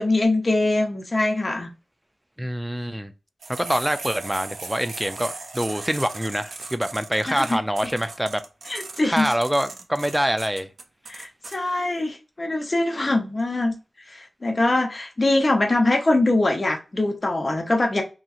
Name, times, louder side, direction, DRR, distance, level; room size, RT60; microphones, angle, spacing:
voice 1, 0.0-1.7 7.3-7.6 8.7-9.3 11.1-13.7 14.1-18.0, left 2 dB, 35° left, 0.7 m, -23 dB
voice 2, 2.4-3.1 3.5-8.4 9.0-10.7, equal, 5° right, 0.3 m, -25 dB
sound 1, 3.4-11.6, right 3 dB, 70° right, 0.5 m, -37 dB
2.9 x 2.6 x 2.4 m
wide cardioid pair, 85°, 0 cm